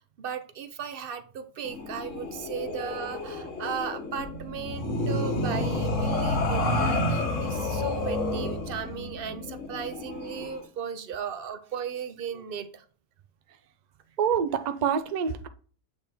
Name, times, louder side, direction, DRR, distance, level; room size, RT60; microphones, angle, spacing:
voice 1, 0.2-12.8, right 7 dB, 55° right, 0.7 m, -36 dB
sound 1, 1.6-10.6, left 2 dB, 65° left, 1.4 m, -30 dB
voice 2, 14.2-15.5, right 7 dB, 90° right, 0.3 m, -26 dB
8.1 x 3.5 x 4.2 m
omnidirectional pair, 1.5 m